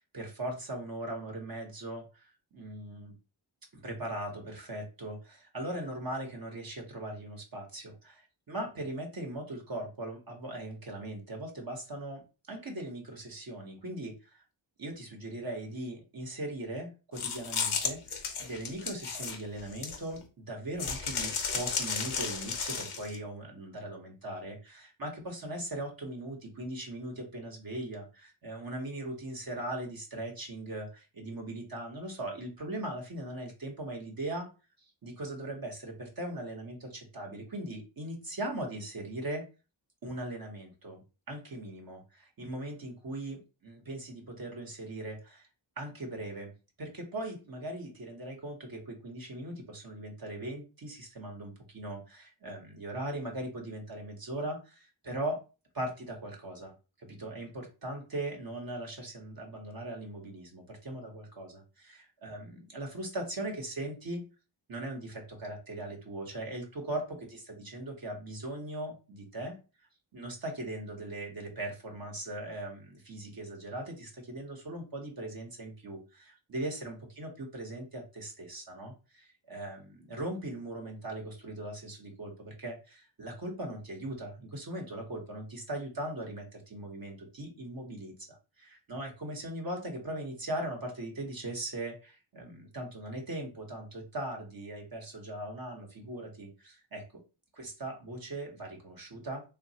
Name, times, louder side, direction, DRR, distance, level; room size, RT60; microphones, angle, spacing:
voice 1, 0.0-3.1 3.7-14.4 14.8-34.5 35.0-39.4 40.0-41.0 41.3-45.5 45.8-46.5 46.8-55.4 55.7-56.7 57.0-64.2 64.7-69.6 70.1-97.2 97.5-99.4, right 1 dB, 45° right, 1 dB, 0.9 m, -39 dB
sound 1, 17.2-20.2 20.8-23.2, left 6 dB, 80° left, 0.8 m, -34 dB
3.1 x 2.2 x 2.7 m, 0.32 s
cardioid pair, 70°, 48 cm